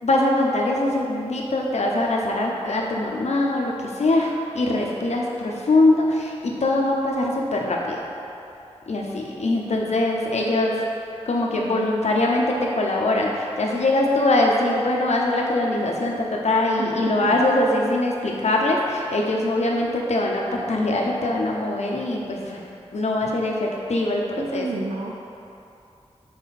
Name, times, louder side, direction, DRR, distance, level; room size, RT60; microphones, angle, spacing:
voice 1, 0.0-8.0 8.9-10.9 11.3-22.6 22.9-24.7, left 2 dB, 85° left, -1 dB, 0.8 m, -22 dB
voice 2, 16.8-17.4 19.0-19.2 24.4-25.1, right 3 dB, 70° right, -2 dB, 0.5 m, -31 dB
5.9 x 4.3 x 4.2 m, 2.8 s
wide cardioid pair, 80°, 11 cm